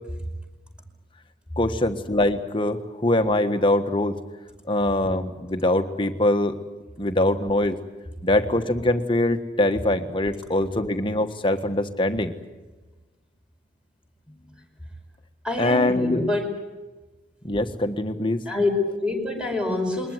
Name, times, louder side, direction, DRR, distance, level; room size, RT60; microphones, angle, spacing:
voice 1, 1.6-4.2 4.7-6.6 7.0-7.8 8.2-12.4 14.3-14.4 15.6-16.2 17.4-18.5, left 1 dB, 30° left, 8 dB, 1.4 m, -23 dB
voice 2, 15.4-16.7 18.5-20.1, left 2 dB, 5° right, 3 dB, 5.1 m, -26 dB
22.5 x 20.0 x 9.4 m, 1.1 s
head